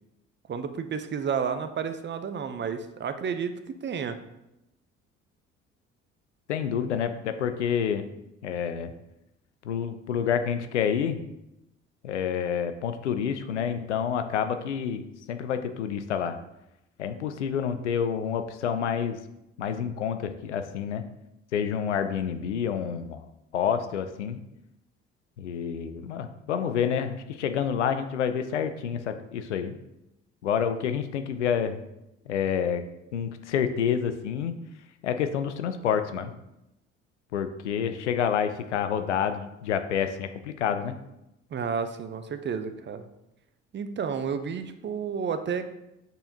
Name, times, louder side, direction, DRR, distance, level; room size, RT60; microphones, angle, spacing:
voice 1, 0.5-4.2 41.5-43.1 43.7-45.7, right 6 dB, 30° right, 9 dB, 0.6 m, -31 dB
voice 2, 6.5-8.1 8.4-8.9 9.6-11.2 12.0-15.0 15.3-16.4 17.0-19.2 19.6-21.0 21.5-23.3 23.5-24.4 25.4-29.8 30.4-31.8 32.3-32.8 33.1-34.5 35.0-36.3 37.3-41.0, left 8 dB, 90° left, 9 dB, 0.5 m, -28 dB
8.0 x 4.3 x 2.8 m, 0.88 s
hypercardioid pair, 55°, 34 cm